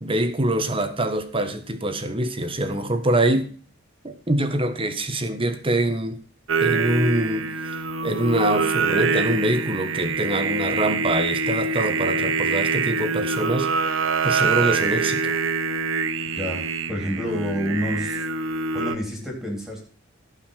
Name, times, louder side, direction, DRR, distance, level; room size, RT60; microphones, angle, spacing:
voice 1, 0.0-3.5 4.0-6.2 6.6-7.8 8.0-15.4, right 1 dB, 25° right, 1.5 m, -25 dB
Singing, 6.5-18.9, right 4 dB, 80° right, 0.9 m, -25 dB
voice 2, 16.4-18.2 18.7-19.8, equal, ahead, 4.0 m, -28 dB
17.0 x 5.7 x 5.8 m
head